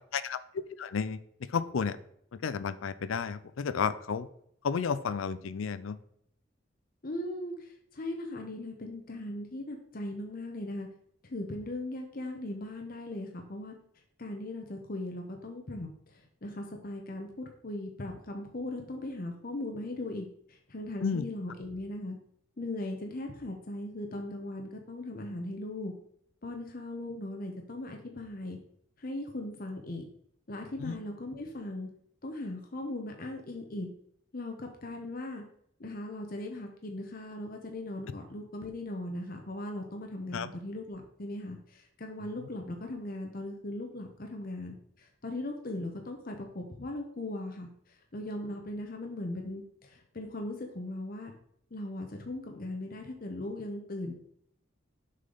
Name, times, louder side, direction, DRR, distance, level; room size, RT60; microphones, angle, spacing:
voice 1, 0.8-1.2 1.5-2.0 2.4-4.3 4.6-6.0 21.0-21.2 30.8-31.0 40.3-40.5, left 6 dB, 75° left, 14 dB, 0.4 m, -32 dB
voice 2, 7.0-10.9 11.2-13.7 14.2-22.2 22.6-25.9 26.4-28.6 29.0-30.0 30.5-31.9 32.2-33.9 34.3-35.4 35.8-47.7 48.1-51.3 51.7-54.1, left 1 dB, 45° left, 3 dB, 0.9 m, -39 dB
6.6 x 5.5 x 3.9 m, 0.69 s
head